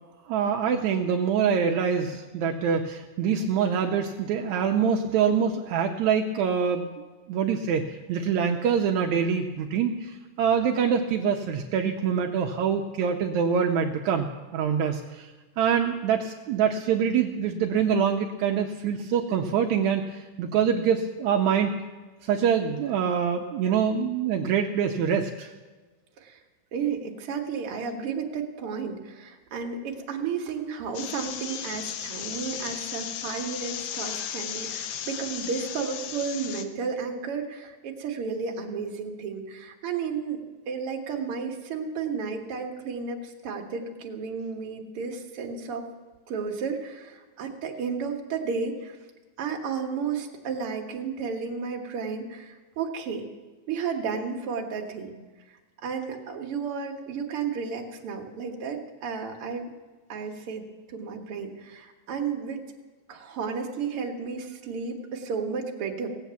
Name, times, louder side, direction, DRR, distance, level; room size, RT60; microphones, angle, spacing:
voice 1, 0.3-6.9 7.3-15.3 15.6-21.7 22.2-25.5, right 7 dB, 80° right, 2 dB, 1.7 m, -25 dB
voice 2, 26.7-40.4 40.7-45.9 46.3-49.0 49.4-53.2 53.7-55.1 55.8-59.7 60.1-62.6 63.1-66.1, right 5 dB, 50° right, 1 dB, 1.9 m, -32 dB
sound 1, 30.9-36.6, left 9 dB, 75° left, 2.4 m, -35 dB
18.0 x 8.2 x 7.0 m, 1.3 s
omnidirectional pair, 4.1 m